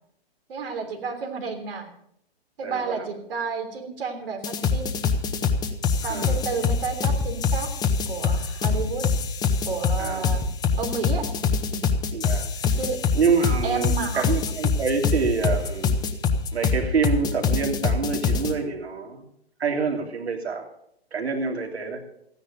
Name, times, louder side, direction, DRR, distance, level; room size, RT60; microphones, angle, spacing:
voice 1, 0.5-1.9 2.6-4.8 6.0-7.7 8.1-9.1 9.7-10.4 10.8-11.3 11.7-11.8 12.8-13.0 13.6-14.2, right 5 dB, 60° right, 4 dB, 3.5 m, -31 dB
voice 2, 2.6-3.1 6.0-6.4 10.0-10.2 12.1-12.5 13.1-16.0 16.5-19.2 19.6-20.7 21.1-22.0, right 5 dB, 85° right, 3 dB, 3.3 m, -26 dB
sound 1, 4.4-18.5, left 5 dB, 15° left, 0.8 m, -24 dB
14.5 x 9.9 x 6.8 m, 0.72 s
hypercardioid pair, 135°, 32 cm